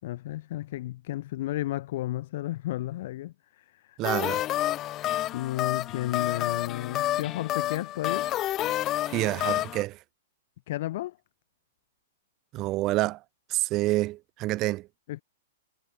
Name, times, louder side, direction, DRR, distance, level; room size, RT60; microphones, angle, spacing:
voice 1, 0.0-4.0 5.3-8.3 10.7-11.2 15.1-15.2, left 15 dB, 60° left, 3.3 m, -33 dB
sound 1, 4.0-9.8, left 14 dB, 30° left, 1.1 m, -29 dB
voice 2, 4.0-4.4 9.1-10.0 12.5-13.2 13.5-14.9, right 18 dB, 35° right, 0.8 m, -27 dB
hypercardioid pair, 120°, 0 cm